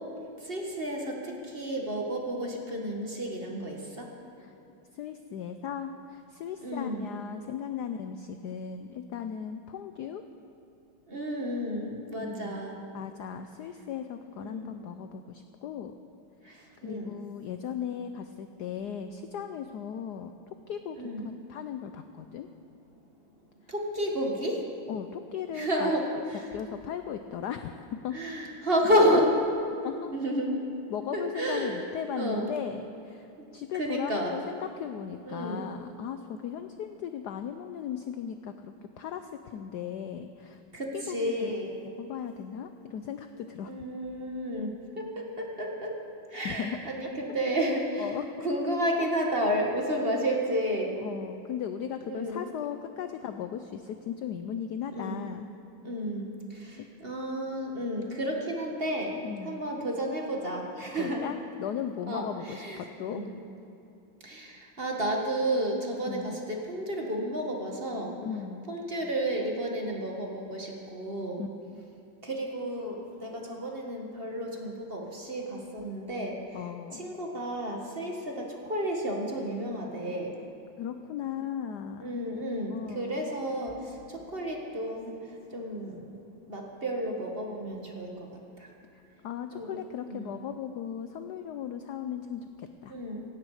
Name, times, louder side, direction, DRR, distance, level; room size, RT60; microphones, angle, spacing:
voice 1, 0.4-4.1 6.6-7.1 11.1-12.8 14.3-14.7 16.4-17.1 21.0-21.3 23.7-24.6 25.5-26.5 28.1-29.3 30.1-30.6 31.1-31.9 32.2-32.5 33.8-34.3 35.2-35.6 40.7-41.7 43.7-45.9 46.3-48.1 48.4-51.0 52.0-52.4 54.9-55.2 55.8-59.2 59.4-61.2 62.1-63.3 64.2-68.1 68.7-71.4 72.2-76.6 76.9-80.3 82.0-85.2 85.5-86.1 86.5-88.3 88.6-88.7 89.5-89.8 90.1-90.3 92.9-93.2, equal, 30° right, 0 dB, 1.7 m, -31 dB
voice 2, 4.9-10.2 12.2-15.9 16.5-21.0 21.2-22.5 24.9-26.3 26.5-28.2 29.8-30.1 30.9-40.6 40.9-41.6 42.0-43.8 46.4-46.8 48.0-48.5 51.0-55.5 56.7-56.9 59.2-59.6 60.9-63.2 66.1-66.4 68.2-68.8 71.4-71.8 76.5-77.1 80.8-82.2 82.7-83.3 88.9-93.0, left 8 dB, 70° left, 8 dB, 1.0 m, -37 dB
16.5 x 16.5 x 4.9 m, 2.8 s
omnidirectional pair, 2.3 m